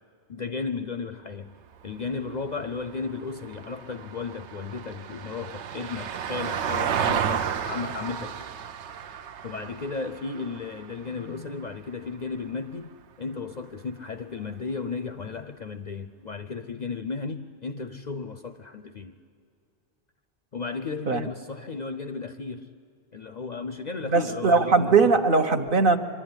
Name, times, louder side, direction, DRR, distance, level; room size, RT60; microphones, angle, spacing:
voice 1, 0.3-1.5 1.8-8.5 9.4-12.9 13.2-19.2 20.5-22.7 23.1-25.1, left 4 dB, 50° left, 10 dB, 0.6 m, -34 dB
Vehicle, 1.6-12.1 14.4-14.5, right 8 dB, 80° right, 1.0 m, -33 dB
voice 2, 24.1-26.0, right 4 dB, 55° right, 7 dB, 1.0 m, -20 dB
24.5 x 11.0 x 9.7 m, 2.3 s
omnidirectional pair, 1.2 m